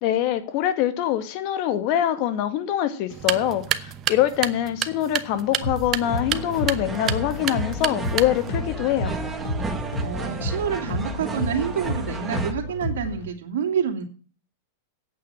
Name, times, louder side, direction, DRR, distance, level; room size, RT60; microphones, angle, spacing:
voice 1, 0.0-9.1, left 11 dB, 50° left, 9 dB, 2.0 m, -24 dB
sound 1, 3.1-8.6, right 11 dB, 30° right, 0.9 m, -30 dB
sound 2, 5.6-13.3, left 1 dB, 75° left, 4.8 m, -31 dB
sound 3, 6.0-12.5, right 3 dB, 15° right, 1.6 m, -34 dB
voice 2, 10.0-14.0, right 7 dB, 75° right, 4 dB, 2.3 m, -27 dB
8.7 x 8.6 x 9.0 m, 0.41 s
hypercardioid pair, 135°, 0 cm